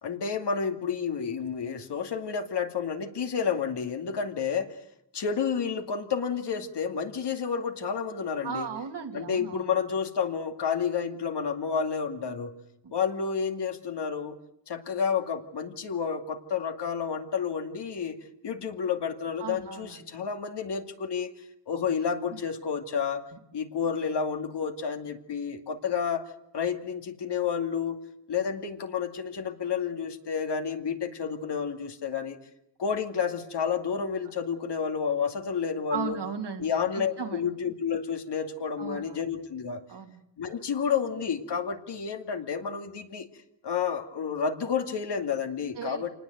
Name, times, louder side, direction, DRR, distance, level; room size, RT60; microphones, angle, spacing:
voice 1, 0.0-4.8 5.1-8.7 9.1-12.5 12.9-14.4 14.7-18.2 18.4-21.3 21.7-23.2 23.5-26.3 26.5-28.0 28.3-32.4 32.8-36.2 36.6-39.8 40.4-43.3 43.6-46.1, left 6 dB, 75° left, 5 dB, 2.5 m, -30 dB
voice 2, 8.4-9.7 12.8-12.9 19.4-20.1 23.3-23.4 35.9-36.7 36.9-37.4 38.8-39.2 39.9-40.2 45.8-46.1, right 6 dB, 70° right, 4 dB, 2.9 m, -36 dB
27.5 x 19.5 x 8.1 m, 0.77 s
wide cardioid pair, 130°, 42 cm